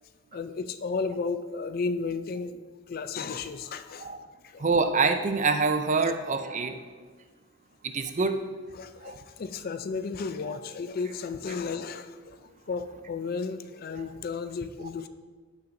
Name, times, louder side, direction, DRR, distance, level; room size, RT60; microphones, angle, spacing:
voice 1, 0.3-2.6 2.9-4.1 4.4-4.6 8.8-12.4 12.7-15.1, left 4 dB, 45° left, 10 dB, 0.4 m, -33 dB
voice 2, 4.6-6.7 7.9-8.4 9.0-9.2 10.5-10.6 13.9-14.0, right 4 dB, 35° right, 8 dB, 0.5 m, -25 dB
15.0 x 5.7 x 2.6 m, 1.5 s
head